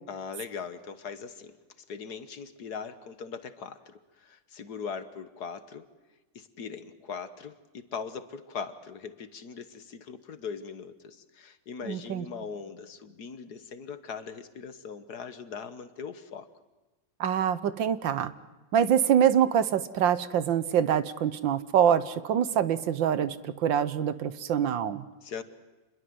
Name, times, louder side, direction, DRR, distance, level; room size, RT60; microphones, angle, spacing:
voice 1, 0.1-5.9 6.4-16.5 25.2-25.4, left 6 dB, 60° left, 11 dB, 1.7 m, -40 dB
voice 2, 11.8-12.2 17.2-18.3 18.7-25.0, right 9 dB, 80° right, 14 dB, 1.7 m, -25 dB
28.0 x 21.5 x 7.8 m, 1.1 s
omnidirectional pair, 2.0 m